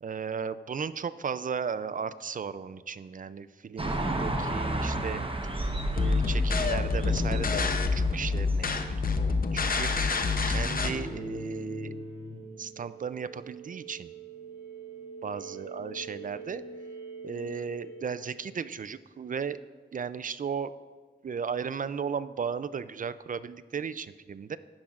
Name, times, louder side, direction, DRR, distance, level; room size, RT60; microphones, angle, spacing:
voice 1, 0.0-5.2 5.9-10.2 10.5-11.9 12.6-14.1 15.2-16.6 17.2-19.6 19.9-20.7 21.2-24.6, right 6 dB, 50° right, 15 dB, 0.4 m, -35 dB
sound 1, 3.8-9.1, right 1 dB, 30° right, 1.0 m, -32 dB
sound 2, 5.9-10.9, left 4 dB, 55° left, 0.7 m, -27 dB
sound 3, 10.8-18.8, right 1 dB, 30° left, 2.7 m, -43 dB
14.5 x 10.5 x 2.5 m, 1.4 s
wide cardioid pair, 80°, 18 cm